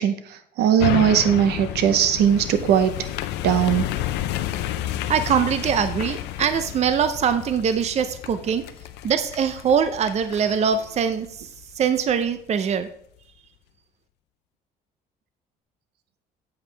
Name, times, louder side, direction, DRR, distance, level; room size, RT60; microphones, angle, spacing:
voice 1, 0.0-2.9 3.4-3.9, right 9 dB, 75° right, 10 dB, 0.8 m, -19 dB
sound 1, 0.8-12.2 12.7-12.8, left 13 dB, 85° left, 0.5 m, -31 dB
voice 2, 5.1-8.6 9.0-11.5 11.8-12.9, right 7 dB, 40° right, 11 dB, 0.6 m, -22 dB
8.0 x 7.1 x 3.3 m, 0.64 s
cardioid pair, 110°, 17 cm